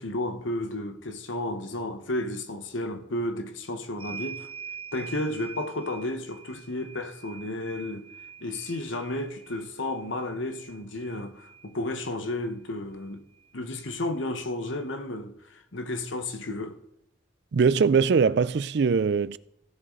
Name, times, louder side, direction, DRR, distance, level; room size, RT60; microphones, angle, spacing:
voice 1, 0.0-4.5 4.9-8.1 8.4-13.2 13.5-16.8, left 1 dB, 85° left, 1.3 m, -32 dB
sound 1, 4.0-12.1 13.4-13.5 13.8-14.8, right 6 dB, 25° right, 0.9 m, -45 dB
voice 2, 17.5-19.4, right 5 dB, 60° right, 0.4 m, -21 dB
16.0 x 7.4 x 3.9 m
head